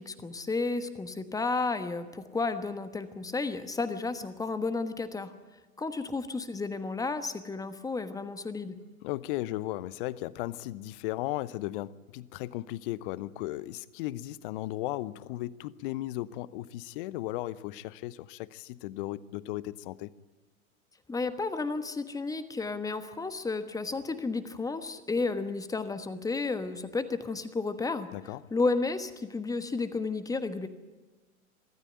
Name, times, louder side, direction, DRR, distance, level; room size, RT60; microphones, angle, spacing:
voice 1, 0.0-5.3 5.8-8.8 21.1-28.1 28.5-30.7, left 3 dB, 10° left, 11 dB, 1.3 m, -32 dB
voice 2, 9.0-20.1 28.1-28.4, left 16 dB, 40° left, 20 dB, 0.8 m, -36 dB
25.0 x 13.5 x 9.0 m, 1.3 s
figure-of-eight pair, 100°, 42 cm